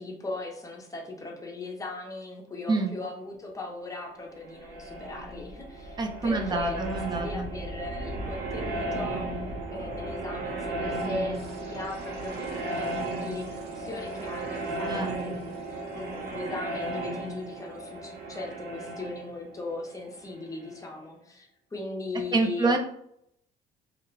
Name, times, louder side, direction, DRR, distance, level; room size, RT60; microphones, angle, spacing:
voice 1, 0.0-6.8 7.2-9.2 9.7-12.9 13.2-22.8, left 2 dB, 20° left, 0 dB, 0.6 m, -38 dB
sound 1, 4.3-20.9, right 2 dB, 75° right, 0.7 m, -35 dB
voice 2, 6.0-7.5 14.9-15.1 22.3-22.8, right 3 dB, 25° right, 5 dB, 0.5 m, -27 dB
2.4 x 2.1 x 3.1 m, 0.71 s
cardioid pair, 110°, 17 cm